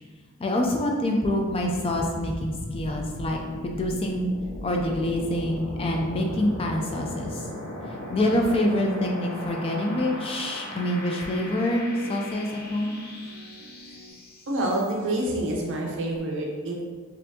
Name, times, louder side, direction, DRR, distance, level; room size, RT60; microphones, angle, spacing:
voice 1, 0.4-4.3 4.6-7.5 8.1-13.0, left 1 dB, 25° left, 1 dB, 0.3 m, -26 dB
sound 1, 1.4-15.2, left 1 dB, 65° left, 0.6 m, -38 dB
sound 2, 4.4-14.1, left 1 dB, 20° right, 1.2 m, -48 dB
voice 2, 14.5-16.8, right 1 dB, 55° right, -2 dB, 0.8 m, -27 dB
4.3 x 2.6 x 2.7 m, 1.5 s
head